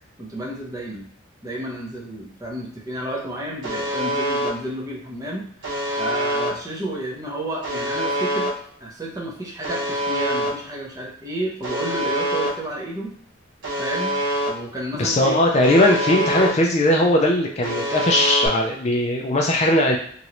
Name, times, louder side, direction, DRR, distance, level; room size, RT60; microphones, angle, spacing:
voice 1, 0.2-1.1 1.4-8.5 8.8-13.1 13.8-14.2 14.5-15.4, right 1 dB, 20° right, -3 dB, 0.7 m, -31 dB
Alarm, 3.6-4.5 5.6-6.5 7.6-8.5 9.6-10.5 11.6-12.5 13.6-14.5 15.6-16.5 17.6-18.5, equal, 70° right, 1.1 m, -25 dB
voice 2, 14.9-20.0, left 1 dB, 35° left, 0 dB, 0.4 m, -19 dB
3.1 x 2.5 x 2.9 m, 0.62 s
head